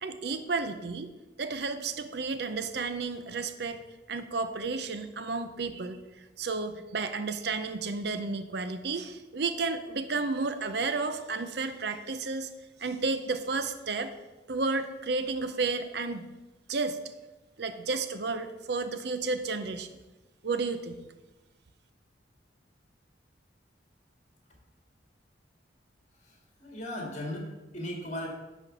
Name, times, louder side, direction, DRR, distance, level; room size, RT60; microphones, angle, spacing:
voice 1, 0.0-1.1 1.4-3.8 4.1-12.5 12.8-14.1 14.5-16.3 16.7-17.0 17.6-19.9 20.4-21.0, right 4 dB, 60° right, 9 dB, 0.6 m, -32 dB
voice 2, 26.1-28.3, left 1 dB, 40° left, 0 dB, 2.2 m, -37 dB
10.5 x 4.4 x 6.7 m, 1.1 s
head